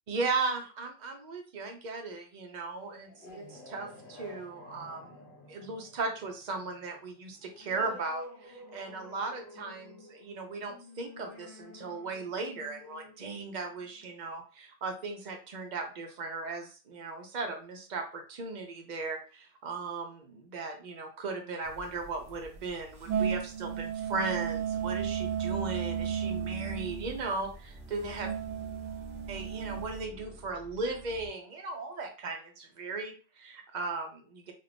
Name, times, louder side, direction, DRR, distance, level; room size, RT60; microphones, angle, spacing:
voice 1, 0.1-28.3 29.3-34.5, right 3 dB, 50° right, 4 dB, 0.6 m, -37 dB
sound 1, 2.9-14.2, left 1 dB, 50° left, 0.9 m, -51 dB
sound 2, 21.6-30.1, right 8 dB, 85° right, 1.0 m, -34 dB
sound 3, 23.9-31.3, right 3 dB, 5° right, 1.1 m, -46 dB
2.7 x 2.4 x 3.3 m, 0.37 s
omnidirectional pair, 1.2 m